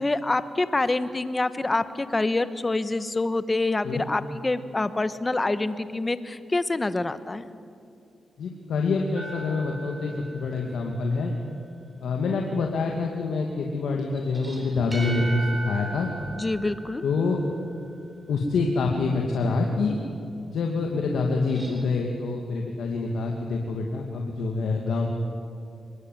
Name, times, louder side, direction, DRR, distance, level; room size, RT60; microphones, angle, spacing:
voice 1, 0.0-7.5 16.4-17.0, left 2 dB, 25° left, 13 dB, 1.3 m, -26 dB
voice 2, 8.4-11.3 12.0-16.1 17.0-17.4 18.3-20.0 20.5-25.1, left 3 dB, 85° left, 1 dB, 2.5 m, -26 dB
sound 1, 9.1-11.1 14.1-17.8 21.3-21.8, right 1 dB, 25° right, 4.5 m, -38 dB
24.0 x 21.5 x 9.6 m, 2.5 s
cardioid pair, 85°, 0 cm